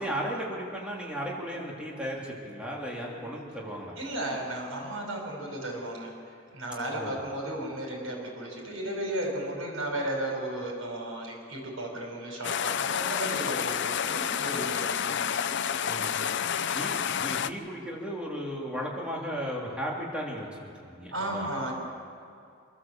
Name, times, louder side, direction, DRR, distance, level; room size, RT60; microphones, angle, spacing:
voice 1, 0.0-3.9 6.9-7.2 15.8-16.3 16.7-21.5, equal, 5° right, -4 dB, 3.3 m, -35 dB
voice 2, 4.0-6.1 6.5-15.3 21.1-21.7, right 1 dB, 90° right, 0 dB, 5.4 m, -34 dB
sound 1, 12.4-17.5, left 8 dB, 60° left, 0.6 m, -29 dB
26.5 x 13.5 x 7.7 m, 2.5 s
head